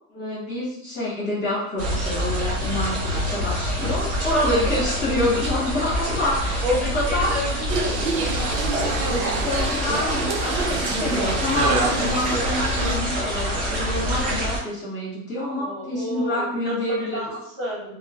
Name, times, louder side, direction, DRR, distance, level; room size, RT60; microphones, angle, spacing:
voice 1, 0.1-7.3 9.1-17.2, left 1 dB, 20° left, -9 dB, 1.0 m, -27 dB
sound 1, 1.8-14.6, equal, 55° right, 1.3 m, -26 dB
voice 2, 6.6-8.2 15.5-17.9, left 1 dB, 35° right, -9 dB, 1.3 m, -30 dB
sound 2, 7.7-12.9, right 3 dB, 75° right, 0.7 m, -27 dB
3.0 x 2.1 x 2.4 m, 0.78 s
supercardioid pair, 170°, 42 cm